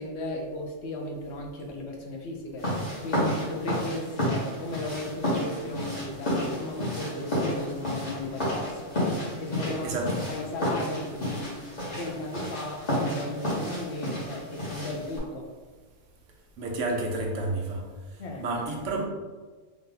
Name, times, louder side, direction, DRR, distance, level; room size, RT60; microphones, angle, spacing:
voice 1, 0.0-2.7 3.0-8.9 9.4-9.9 10.3-11.6 11.9-15.5 18.2-18.4, left 1 dB, 70° left, 1 dB, 0.9 m, -35 dB
sound 1, 2.6-15.2, equal, 35° left, 1.3 m, -31 dB
voice 2, 9.8-10.2 16.6-17.8 18.4-19.1, right 2 dB, 80° right, 1 dB, 1.1 m, -30 dB
3.5 x 2.7 x 3.8 m, 1.4 s
omnidirectional pair, 1.3 m